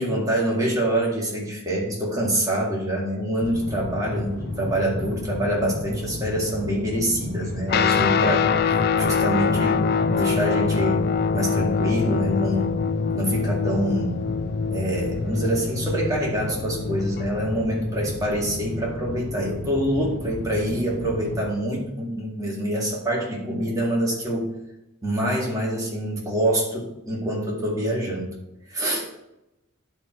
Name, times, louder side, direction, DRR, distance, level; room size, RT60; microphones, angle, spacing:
voice 1, 0.0-8.5 9.0-11.1 11.3-12.8 13.1-14.2 14.7-24.5 25.0-28.4 28.7-29.1, right 1 dB, 15° right, -4 dB, 2.1 m, -25 dB
sound 1, 3.4-21.4, left 2 dB, 80° left, 1.7 m, -33 dB
Guitar, 7.7-17.3, left 5 dB, 50° left, 0.3 m, -24 dB
10.5 x 4.7 x 4.4 m, 0.90 s
head